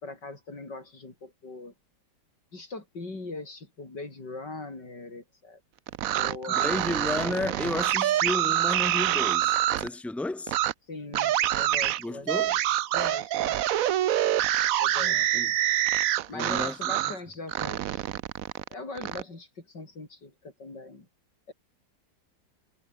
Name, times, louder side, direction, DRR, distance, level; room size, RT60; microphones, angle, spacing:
voice 1, 0.0-1.7 2.5-5.6 6.1-6.9 10.9-12.5 12.9-13.6 14.8-15.2 16.3-18.0 18.7-21.1 21.5-21.6, left 3 dB, 65° left, 5.7 m, -41 dB
sound 1, 5.9-9.9 10.5-10.7 11.1-17.2 17.5-19.2, right 12 dB, 65° right, 0.9 m, -26 dB
voice 2, 6.5-10.5 12.0-12.6 15.0-15.5 16.3-16.7, left 2 dB, ahead, 1.5 m, -32 dB
omnidirectional pair, 2.0 m